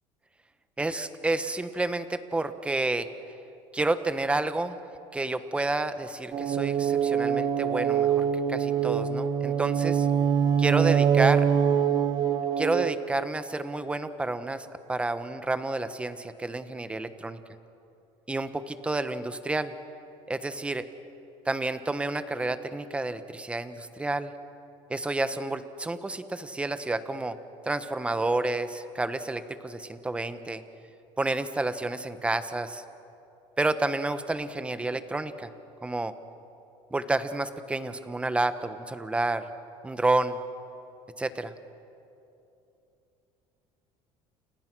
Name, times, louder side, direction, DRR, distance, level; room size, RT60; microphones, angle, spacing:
voice 1, 0.8-3.1 3.7-4.8 5.1-10.1 10.6-11.5 12.6-17.4 18.3-19.7 20.3-20.8 21.4-24.3 24.9-27.4 27.6-30.6 31.2-32.8 33.6-35.5 35.8-36.1 36.9-39.5 39.8-40.4 41.2-41.5, right 2 dB, 10° right, 11 dB, 1.1 m, -30 dB
sound 1, 6.3-12.9, right 8 dB, 35° right, 1.2 m, -24 dB
30.0 x 30.0 x 6.2 m, 2.9 s
cardioid pair, 140°, 12 cm